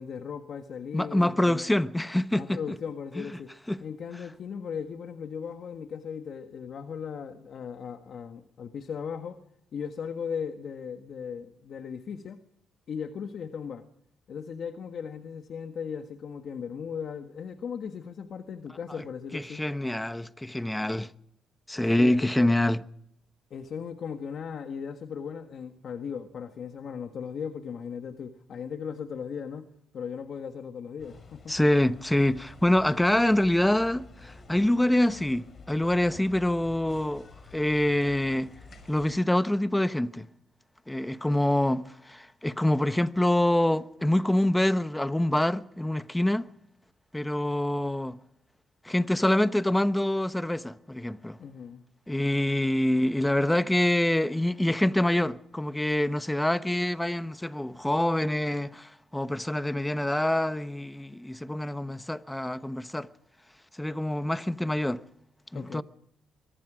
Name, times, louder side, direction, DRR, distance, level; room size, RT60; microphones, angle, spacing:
voice 1, 0.0-1.7 2.3-3.5 3.8-9.4 9.7-12.4 12.9-13.8 14.3-19.6 22.0-22.5 23.5-29.7 29.9-31.6 51.4-51.8 65.5-65.8, left 7 dB, 60° left, 1.5 m, -37 dB
voice 2, 0.9-2.6 3.2-3.3 3.7-3.8 19.3-21.1 21.7-22.8 31.5-38.5 38.9-40.3 40.9-46.5 47.1-48.2 48.8-51.4 52.1-63.1 63.8-65.0 65.5-65.8, left 1 dB, 10° left, 1.0 m, -26 dB
sound 1, 31.0-39.1, left 2 dB, 40° left, 5.6 m, -50 dB
24.5 x 23.0 x 5.1 m
cardioid pair, 90°, 0 cm